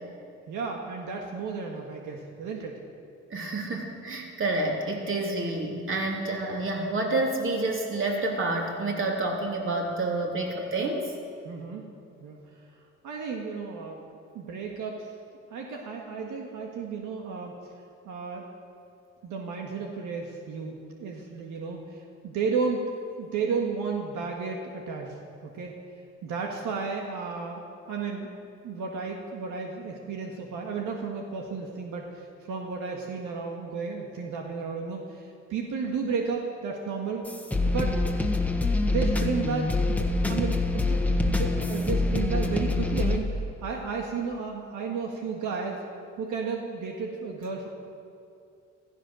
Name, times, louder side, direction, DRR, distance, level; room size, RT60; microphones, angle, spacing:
voice 1, 0.5-2.8 11.4-11.8 12.2-12.4 13.0-14.0 14.3-15.1 15.5-17.5 18.0-18.5 19.2-25.2 25.4-25.8 26.2-28.3 28.6-37.3 37.6-38.0 38.8-45.8 46.2-47.7, right 5 dB, 80° right, 1 dB, 1.7 m, -33 dB
voice 2, 3.3-11.1, right 2 dB, 40° right, 0 dB, 3.3 m, -29 dB
sound 1, 37.3-43.2, left 2 dB, 5° left, 1.4 m, -25 dB
15.5 x 14.5 x 6.4 m, 2.6 s
cardioid pair, 90°, 30 cm